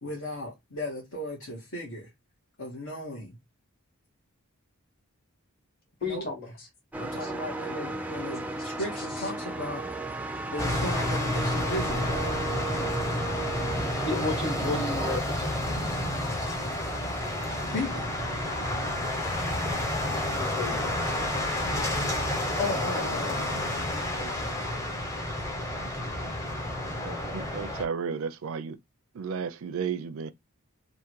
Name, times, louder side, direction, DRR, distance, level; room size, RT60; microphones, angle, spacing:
voice 1, 0.0-2.1 2.6-3.4 6.0-6.3 7.0-9.9 10.5-12.4 17.6-18.1 22.6-24.9 26.1-26.4, left 1 dB, 70° left, 1.7 m, -36 dB
voice 2, 6.0-6.5 7.2-7.3 9.2-9.3 14.1-15.5 20.3-21.0, left 3 dB, 40° left, 1.9 m, -33 dB
sound 1, 6.9-15.2, right 2 dB, 5° right, 0.4 m, -35 dB
sound 2, 10.6-27.8, left 1 dB, 15° left, 0.8 m, -30 dB
voice 3, 27.0-28.8 29.1-30.3, right 6 dB, 70° right, 0.4 m, -33 dB
3.6 x 2.6 x 4.6 m
head